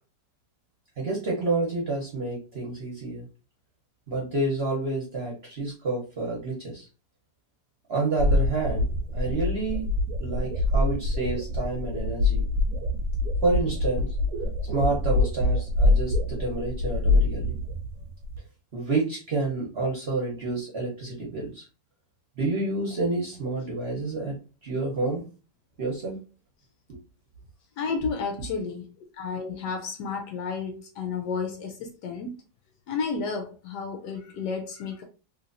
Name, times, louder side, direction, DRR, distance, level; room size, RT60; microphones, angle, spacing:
voice 1, 1.0-3.2 4.1-6.9 7.9-8.9 9.1-9.9 10.2-12.4 13.4-14.1 14.7-17.6 18.7-21.6 22.4-25.2 25.8-26.2 26.9-27.0, right 3 dB, 45° right, 1.0 m, -29 dB
sound 1, 8.2-18.4, left 2 dB, 70° right, 1.1 m, -25 dB
voice 2, 27.8-28.8 29.2-32.3 32.9-35.0, left 5 dB, 70° left, 1.1 m, -32 dB
3.1 x 2.9 x 2.6 m
omnidirectional pair, 2.0 m